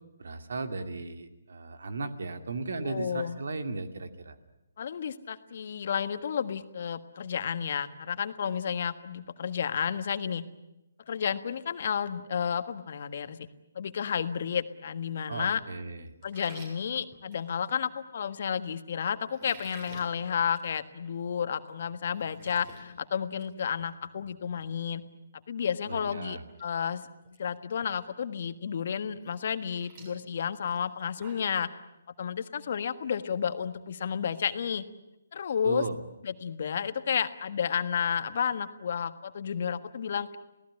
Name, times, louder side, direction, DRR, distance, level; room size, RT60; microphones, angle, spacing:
voice 1, 0.2-4.4 15.3-16.1 25.8-26.4 35.6-36.0, right 3 dB, 65° right, 8 dB, 2.4 m, -36 dB
voice 2, 2.8-3.4 4.8-10.4 11.1-13.4 13.7-15.6 16.2-25.0 25.5-27.0 27.4-31.7 32.2-34.8 35.3-35.8 36.2-40.4, left 7 dB, 55° left, 10 dB, 1.5 m, -31 dB
sound 1, 16.2-17.8 19.3-20.1 20.5-20.7 21.0-21.1 21.6-21.7 22.0-22.8 23.2-23.5 23.8-23.9 25.8-25.9 26.3-26.6 26.9-27.4 27.8-27.9 29.3-31.6, right 3 dB, 35° right, 7.4 m, -51 dB
28.0 x 17.5 x 9.9 m, 0.93 s
figure-of-eight pair, 140°, 0 cm